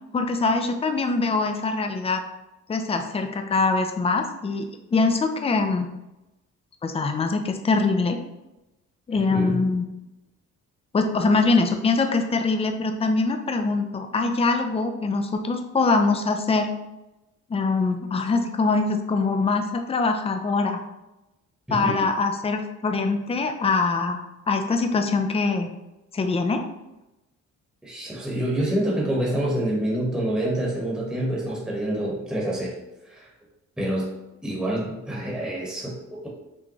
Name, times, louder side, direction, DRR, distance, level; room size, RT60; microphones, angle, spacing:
voice 1, 0.1-2.2 2.7-5.9 6.8-8.2 9.1-9.8 10.9-16.7 17.5-20.8 21.7-25.7 26.1-26.6, left 3 dB, 20° left, 6 dB, 0.5 m, -23 dB
voice 2, 9.1-9.6 21.7-22.1 27.8-32.7 33.0-33.3 33.8-34.1 34.4-36.3, right 1 dB, 5° right, -4 dB, 1.2 m, -27 dB
6.2 x 2.2 x 3.0 m, 0.96 s
cardioid pair, 90°, 30 cm